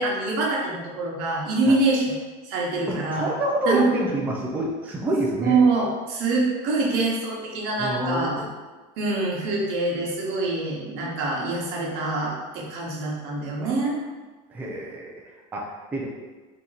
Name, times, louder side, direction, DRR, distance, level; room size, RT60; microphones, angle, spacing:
voice 1, 0.0-2.1 2.4-3.3 3.7-3.9 5.4-8.3 9.0-14.0, right 3 dB, 60° right, -3 dB, 1.1 m, -25 dB
voice 2, 2.9-5.6 7.8-8.5 13.6-13.8 14.5-16.1, right 1 dB, 10° right, -2 dB, 0.4 m, -27 dB
3.8 x 2.9 x 4.0 m, 1.3 s
cardioid pair, 175°, 20 cm